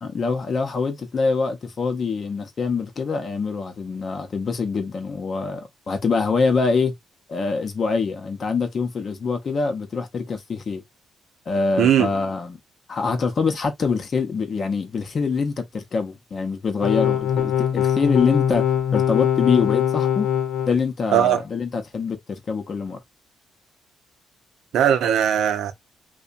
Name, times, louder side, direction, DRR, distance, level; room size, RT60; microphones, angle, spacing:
voice 1, 0.0-6.9 7.3-10.8 11.5-12.6 12.9-18.6 18.9-20.3 20.7-23.0, left 4 dB, 45° left, 0.7 m, -24 dB
voice 2, 11.8-12.1 21.1-21.4 24.7-25.7, right 10 dB, 75° right, 0.5 m, -18 dB
sound 1, 16.8-20.7, left 9 dB, 90° left, 0.7 m, -22 dB
2.8 x 2.2 x 2.5 m
cardioid pair, 90°, 0 cm